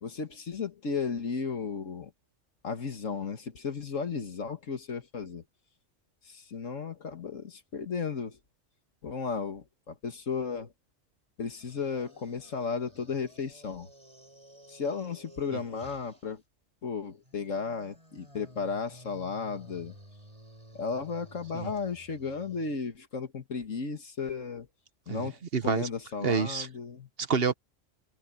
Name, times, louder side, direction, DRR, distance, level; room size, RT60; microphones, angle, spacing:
voice 1, 0.0-2.1 2.6-5.4 6.3-8.4 9.0-10.7 11.4-13.9 14.7-16.4 16.8-19.9 20.7-24.7 25.1-25.4 25.6-27.1, left 5 dB, 80° left, 2.1 m, -34 dB
sound 1, 11.6-16.3 17.2-22.8, equal, 25° right, 6.5 m, -54 dB
voice 2, 25.1-25.9 26.2-26.7 27.2-27.5, right 6 dB, 55° right, 1.1 m, -28 dB
omnidirectional pair, 1.3 m